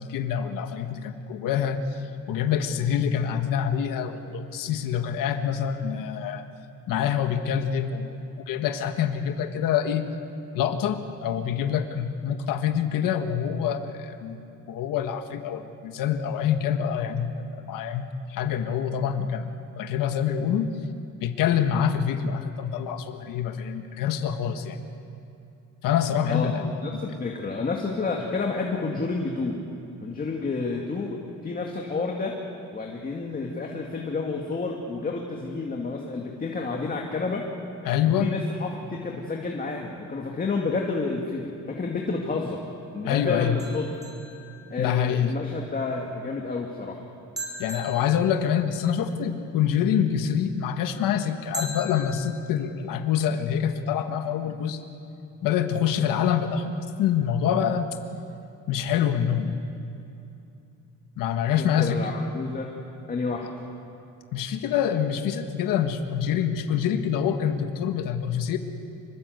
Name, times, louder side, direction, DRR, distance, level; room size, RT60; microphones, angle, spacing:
voice 1, 0.0-2.0 2.3-6.5 6.9-10.0 10.5-14.4 14.7-19.5 19.8-20.7 21.2-24.8 25.8-27.0 37.8-38.3 43.0-43.6 44.8-45.3 47.6-54.8 55.4-57.9 58.7-59.6 61.2-62.0 63.4-63.5 64.3-68.6, left 8 dB, 85° left, 7 dB, 1.6 m, -26 dB
voice 2, 26.8-29.6 30.0-32.4 32.7-37.5 38.2-42.6 42.9-43.8 44.7-47.0 61.6-62.7 63.1-63.5, left 3 dB, 25° left, 0 dB, 2.1 m, -30 dB
sound 1, 43.6-45.1 47.4-49.0 51.5-52.6, equal, 10° right, 4.6 m, -39 dB
26.0 x 22.5 x 8.0 m, 2.7 s
cardioid pair, 145°, 32 cm